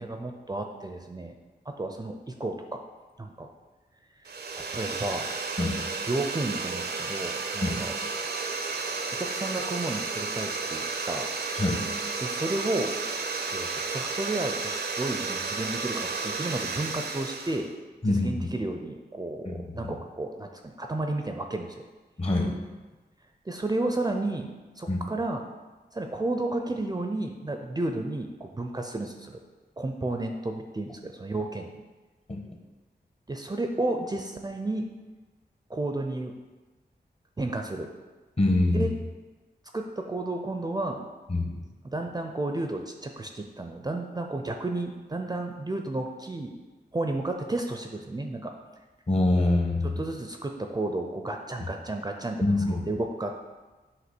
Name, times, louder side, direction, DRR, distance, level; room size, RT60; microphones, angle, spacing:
voice 1, 0.0-1.3 1.7-2.8 3.2-3.5 4.2-5.3 6.1-8.0 9.2-11.3 12.2-12.9 13.5-17.7 18.0-21.8 23.5-24.5 24.8-25.4 25.9-29.4 29.8-31.7 33.3-34.9 35.7-36.3 37.4-37.9 38.7-38.9 39.7-41.0 41.8-46.5 46.9-48.5 49.8-52.4 52.9-53.5, right 2 dB, 25° right, 4 dB, 0.5 m, -32 dB
sound 1, 4.2-17.7, right 4 dB, 80° right, 0.6 m, -32 dB
voice 2, 22.2-22.5 24.9-25.0 32.3-32.4 38.4-38.9 41.3-41.5 49.1-50.0 52.4-52.8, left 2 dB, 35° left, 1 dB, 1.1 m, -24 dB
8.0 x 3.0 x 6.0 m, 1.2 s
wide cardioid pair, 115°, 17 cm